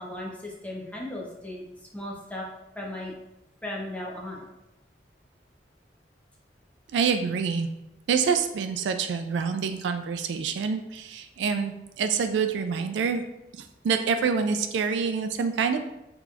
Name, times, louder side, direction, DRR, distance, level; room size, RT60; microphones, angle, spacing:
voice 1, 0.0-1.6 1.9-2.5 2.7-3.1 3.6-4.5, left 1 dB, 10° left, -3 dB, 0.6 m, -36 dB
voice 2, 6.9-7.7 8.1-13.2 13.8-15.9, right 6 dB, 80° right, 7 dB, 0.3 m, -26 dB
3.8 x 2.8 x 2.4 m, 0.91 s
head